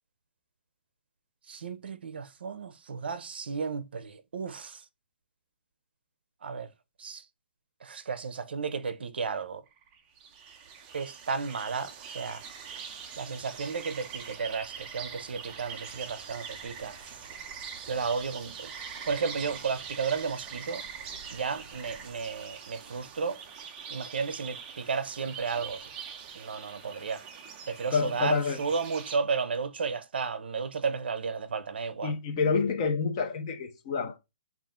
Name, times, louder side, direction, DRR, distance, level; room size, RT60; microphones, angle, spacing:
voice 1, 1.5-4.8 6.4-6.7 7.0-7.2 7.8-9.6 10.9-12.4 13.2-17.0 17.9-18.7 19.1-20.8 21.3-23.4 23.9-25.9 26.4-27.2 27.7-32.1, right 5 dB, 70° right, 0.5 m, -33 dB
sound 1, 9.7-29.2, right 6 dB, 15° right, 0.4 m, -43 dB
voice 2, 27.9-28.6 32.0-34.2, left 5 dB, 25° left, 0.6 m, -28 dB
4.0 x 2.4 x 3.6 m
hypercardioid pair, 170°, 6 cm